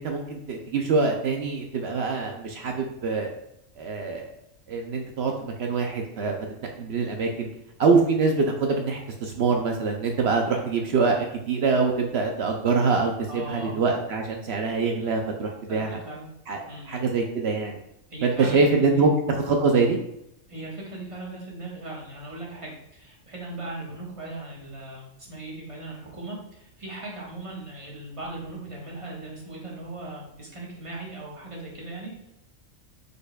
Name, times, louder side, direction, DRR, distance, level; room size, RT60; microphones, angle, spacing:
voice 1, 0.0-3.3 3.8-4.3 4.7-6.3 6.8-7.5 7.8-16.0 16.5-17.8 18.2-20.0, right 4 dB, 65° right, 2 dB, 0.7 m, -24 dB
voice 2, 13.3-13.7 15.7-16.3 16.7-17.0 18.1-19.1 20.5-32.3, right 2 dB, 25° right, -4 dB, 1.2 m, -38 dB
4.9 x 4.4 x 2.2 m, 0.81 s
omnidirectional pair, 1.4 m